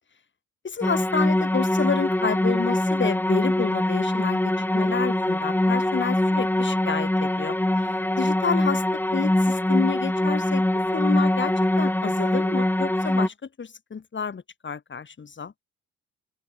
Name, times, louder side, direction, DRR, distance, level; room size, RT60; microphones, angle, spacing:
voice 1, 0.6-7.6 7.8-10.6 10.9-15.5, left 5 dB, 40° left, 5.4 m, -30 dB
sound 1, 0.8-13.3, left 1 dB, 5° left, 1.6 m, -23 dB
open air
cardioid pair, 90°, 30 cm